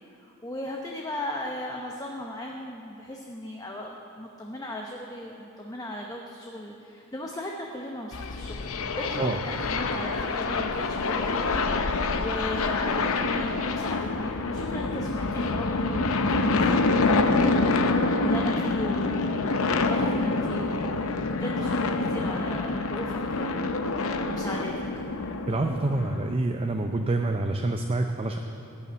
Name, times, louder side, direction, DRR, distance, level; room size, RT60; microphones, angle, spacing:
voice 1, 0.4-24.8, left 1 dB, 15° left, 0 dB, 0.8 m, -37 dB
sound 1, 8.1-26.3, left 3 dB, 70° left, 0.7 m, -26 dB
voice 2, 25.5-28.4, right 2 dB, 25° right, 4 dB, 0.5 m, -27 dB
14.0 x 6.9 x 9.5 m, 3.0 s
head